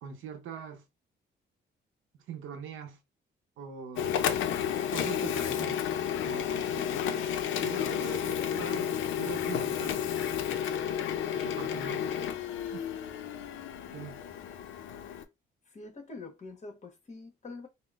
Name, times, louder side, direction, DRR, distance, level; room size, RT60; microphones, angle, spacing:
voice 1, 0.0-0.8 2.1-3.0 3.6-4.1 4.9-5.9 6.2-7.3 7.6-8.9 9.2-10.0 11.3-12.3 12.7-12.8 13.9-14.2, right 7 dB, 85° right, 0.7 m, -42 dB
Printer, 4.0-15.2, left 9 dB, 80° left, 0.5 m, -32 dB
voice 2, 15.7-17.7, left 3 dB, 35° left, 1.1 m, -45 dB
3.7 x 2.0 x 2.4 m
cardioid pair, 90°, 20 cm